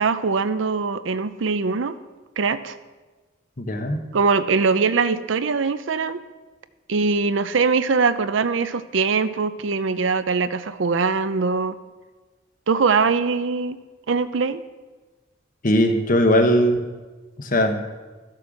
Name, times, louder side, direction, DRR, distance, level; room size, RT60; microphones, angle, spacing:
voice 1, 0.0-2.0 2.4-2.8 4.1-6.2 6.9-11.8 12.7-13.8 14.1-14.6, right 4 dB, 70° right, 12 dB, 0.6 m, -22 dB
voice 2, 3.6-4.0 15.6-16.8 17.4-17.8, equal, 45° left, 6 dB, 1.1 m, -19 dB
13.0 x 7.5 x 6.3 m, 1.3 s
head